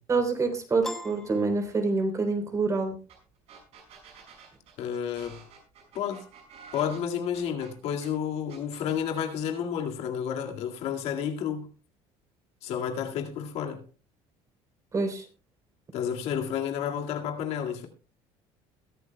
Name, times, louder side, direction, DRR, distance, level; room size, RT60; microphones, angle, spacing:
voice 1, 0.1-3.0 14.9-15.2, right 3 dB, 25° right, 3.5 m, -26 dB
Piano, 0.8-2.4, left 1 dB, 5° left, 1.3 m, -40 dB
sound 1, 3.1-3.2 3.5-8.1 8.5-9.0, right 6 dB, 60° right, 6.0 m, -50 dB
voice 2, 4.8-5.4 5.9-6.3 6.7-11.7 12.6-13.8 15.9-17.9, left 8 dB, 65° left, 2.0 m, -31 dB
21.5 x 11.0 x 2.2 m
cardioid pair, 130°, 12 cm